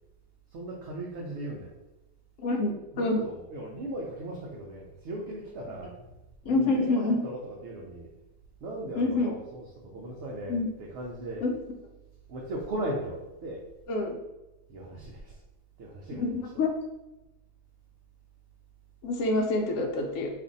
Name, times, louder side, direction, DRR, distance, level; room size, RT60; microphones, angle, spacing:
voice 1, 0.5-1.7 2.9-6.2 6.4-8.1 8.6-11.4 12.3-13.7 14.7-15.4 15.8-16.2, right 1 dB, 65° right, -2 dB, 0.8 m, -38 dB
voice 2, 2.4-3.2 6.4-7.2 9.0-9.3 10.5-10.7 11.4-11.6 13.9-14.1 16.2-16.7 19.0-20.3, left 2 dB, 70° left, 2 dB, 0.9 m, -27 dB
2.6 x 2.5 x 3.8 m, 0.98 s
omnidirectional pair, 1.5 m